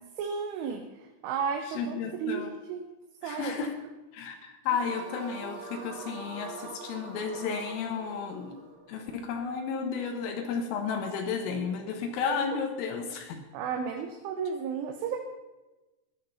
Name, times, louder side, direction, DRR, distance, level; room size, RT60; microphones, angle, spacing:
voice 1, 0.2-2.9 3.2-3.7 13.5-15.2, right 6 dB, 80° right, 4 dB, 3.5 m, -33 dB
voice 2, 1.7-2.5 3.2-3.7 4.1-8.6 8.9-13.4, left 5 dB, 80° left, 4 dB, 3.9 m, -33 dB
sound 1, 4.6-9.9, right 3 dB, 65° right, 4.2 m, -44 dB
17.0 x 11.5 x 5.6 m, 1.1 s
omnidirectional pair, 5.7 m